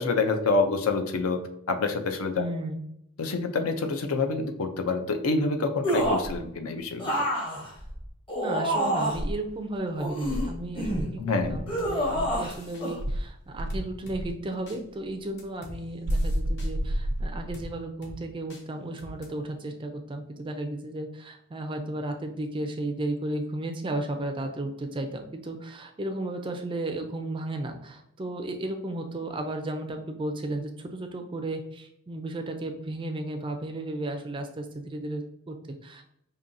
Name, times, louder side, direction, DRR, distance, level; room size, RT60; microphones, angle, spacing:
voice 1, 0.0-1.4 1.7-2.4 3.2-7.2 11.2-11.6, left 3 dB, 70° left, 6 dB, 0.5 m, -27 dB
voice 2, 2.3-2.8 8.3-36.0, right 1 dB, 20° right, 5 dB, 0.3 m, -34 dB
sound 1, 5.8-6.3 7.0-9.3 10.0-11.1 11.7-12.5 12.8-13.0, equal, 20° left, 0.8 m, -28 dB
Insect, 10.2-12.5 13.0-14.4 16.0-17.7, equal, 85° right, 0.5 m, -30 dB
sound 2, 11.8-11.9 12.5-12.9 13.7-14.2 14.7-14.8 15.4-15.8 16.1-16.7 17.5-17.7 18.0-18.2 18.5-18.6 19.0-19.3, equal, 50° left, 0.9 m, -44 dB
5.3 x 2.7 x 2.6 m, 0.74 s
head